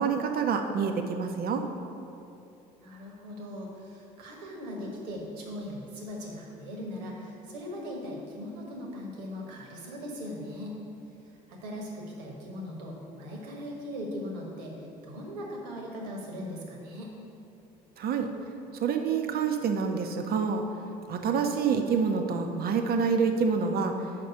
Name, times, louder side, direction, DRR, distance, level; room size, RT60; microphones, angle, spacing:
voice 1, 0.0-1.6 18.0-18.3 18.7-20.6 21.1-23.9, right 5 dB, 45° right, 5 dB, 0.8 m, -27 dB
voice 2, 2.8-10.8 11.2-17.1, left 1 dB, 75° right, -1 dB, 1.3 m, -39 dB
5.8 x 5.3 x 6.7 m, 2.7 s
figure-of-eight pair, 55°, 21 cm